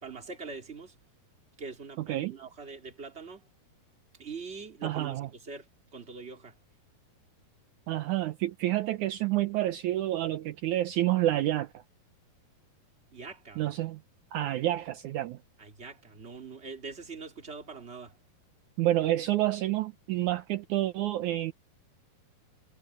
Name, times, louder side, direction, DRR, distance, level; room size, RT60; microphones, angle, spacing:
voice 1, 0.0-0.9 1.6-3.4 4.2-5.7 5.9-6.5 13.1-13.6 15.6-18.2, right 4 dB, 20° right, 2.6 m, -43 dB
voice 2, 2.0-2.3 4.8-5.3 7.9-11.8 13.6-14.0 14.3-15.4 18.8-21.5, right 14 dB, 80° right, 1.7 m, -29 dB
omnidirectional pair, 4.6 m